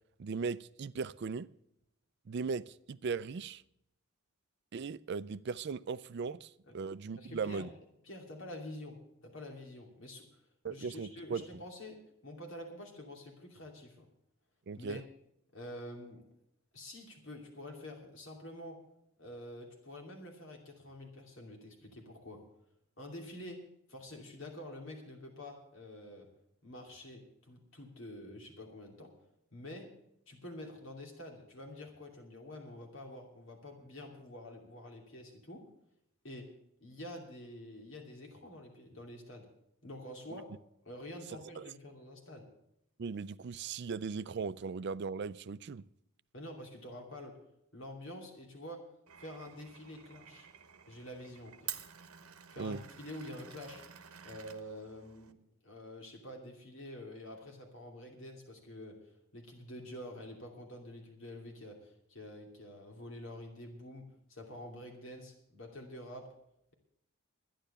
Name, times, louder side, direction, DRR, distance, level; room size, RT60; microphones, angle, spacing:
voice 1, 0.2-1.5 2.3-3.6 4.7-7.7 10.6-11.5 14.7-15.0 41.6-41.7 43.0-45.8 52.6-52.8, right 5 dB, 50° right, 0.4 m, -38 dB
voice 2, 7.2-7.7 8.0-10.4 10.7-14.1 14.8-15.0 15.5-16.2 16.7-18.8 19.2-22.4 23.0-23.6 23.9-26.3 26.6-29.1 29.5-29.9 30.3-35.6 36.2-36.5 36.8-39.5 39.8-40.5 40.8-42.5 46.3-47.4 47.7-48.9 49.2-50.5 50.9-51.7 52.5-53.8 54.2-55.4 55.6-66.3, left 1 dB, 60° left, 2.7 m, -47 dB
Glass, 49.1-55.3, right 9 dB, 75° right, 1.0 m, -50 dB
12.0 x 10.0 x 6.7 m
head